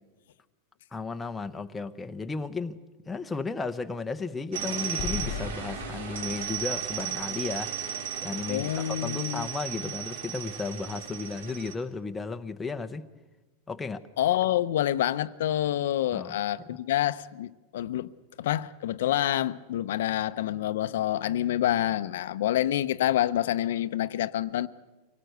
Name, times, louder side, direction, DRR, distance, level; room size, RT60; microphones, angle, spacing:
voice 1, 0.9-2.8 3.1-7.9 8.2-13.1 13.7-14.0 16.1-16.4 16.7-16.8, left 4 dB, 10° left, 0.7 m, -34 dB
sound 1, 4.5-11.7, right 8 dB, 90° right, 2.9 m, -35 dB
Explosion, 5.0-8.3, left 9 dB, 35° left, 1.0 m, -39 dB
voice 2, 8.5-9.5 14.2-18.1 18.4-24.7, left 12 dB, 80° left, 0.7 m, -27 dB
24.5 x 18.0 x 8.0 m
supercardioid pair, 165°, 0 cm